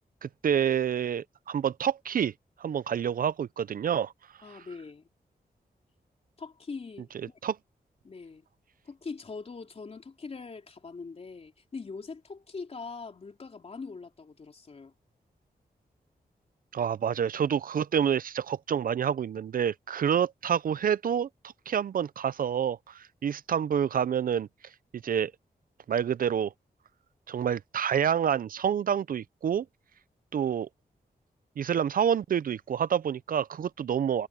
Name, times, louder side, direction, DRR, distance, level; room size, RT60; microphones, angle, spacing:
voice 1, 0.2-2.3 2.6-4.1 7.4-7.5 16.7-21.3 21.7-24.5 25.0-25.3 25.9-26.5 27.3-29.6 30.3-30.7 31.6-34.3, right 8 dB, 60° right, 0.4 m, -28 dB
voice 2, 4.4-5.1 6.4-7.4 8.0-8.5 8.8-14.9, left 4 dB, 40° left, 3.7 m, -42 dB
wide cardioid pair, 180°, 16 cm